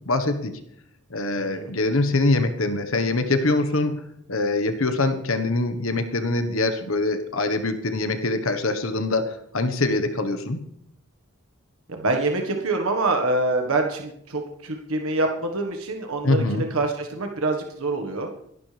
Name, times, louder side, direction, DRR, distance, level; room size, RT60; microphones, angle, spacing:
voice 1, 0.0-0.6 1.1-4.0 4.3-10.6 16.2-16.6, left 2 dB, 60° left, 9 dB, 1.3 m, -24 dB
voice 2, 1.4-1.7 11.9-18.3, right 2 dB, 70° right, 3 dB, 1.6 m, -25 dB
23.5 x 12.0 x 3.4 m, 0.72 s
head